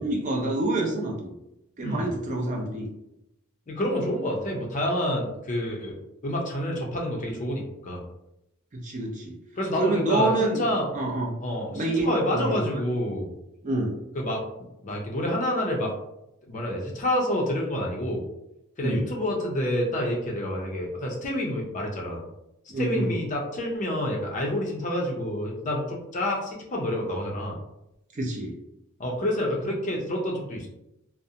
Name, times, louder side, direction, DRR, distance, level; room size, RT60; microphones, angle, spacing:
voice 1, 0.0-1.3 1.8-2.9 8.7-9.4 9.8-10.6 10.9-11.3 11.7-12.8 13.6-14.0 18.8-19.0 22.7-23.1 28.1-28.5, right 2 dB, 35° right, 0 dB, 0.4 m, -27 dB
voice 2, 3.7-5.9 6.2-8.0 9.6-11.0 11.4-13.3 14.2-14.4 14.8-15.9 16.5-18.2 18.8-22.2 22.8-27.6 29.0-30.7, left 1 dB, 35° left, -1 dB, 0.5 m, -28 dB
2.5 x 2.0 x 2.7 m, 0.86 s
head